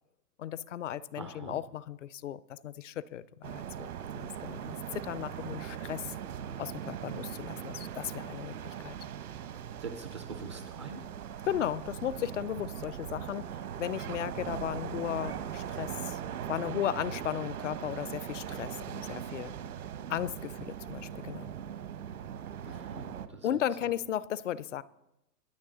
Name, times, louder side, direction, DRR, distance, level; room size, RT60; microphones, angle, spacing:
voice 1, 0.4-3.9 4.1-6.0 6.6-8.5 8.8-8.9 11.4-13.4 13.8-15.9 16.5-19.5 20.1-21.5 23.4-24.8, left 10 dB, 50° left, 19 dB, 0.6 m, -35 dB
voice 2, 1.2-1.6 9.8-11.0 22.6-23.5, right 4 dB, 20° right, 7 dB, 0.4 m, -43 dB
sound 1, 3.4-23.3, right 9 dB, 60° right, 1.2 m, -40 dB
22.5 x 9.4 x 3.8 m, 0.90 s
hypercardioid pair, 140°, 49 cm